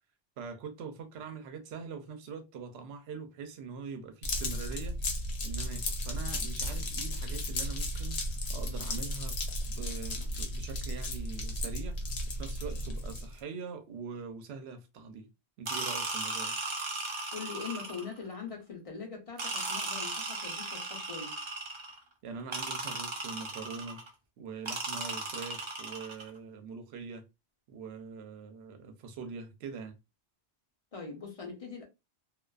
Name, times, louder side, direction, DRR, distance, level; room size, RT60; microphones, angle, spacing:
voice 1, 0.4-5.0 5.4-8.2 8.5-9.4 9.7-12.1 12.4-15.3 15.6-16.6 22.2-24.1 24.4-27.3 27.7-30.0, right 5 dB, 75° right, 0.8 m, -43 dB
sound 1, 4.2-13.4, left 1 dB, 75° left, 0.9 m, -34 dB
sound 2, 15.7-18.2 19.4-22.0 22.5-24.1 24.7-26.3, right 2 dB, 40° right, 0.4 m, -36 dB
voice 2, 17.3-21.4 30.9-31.8, left 5 dB, 40° left, 0.6 m, -42 dB
2.3 x 2.3 x 2.3 m
omnidirectional pair, 1.1 m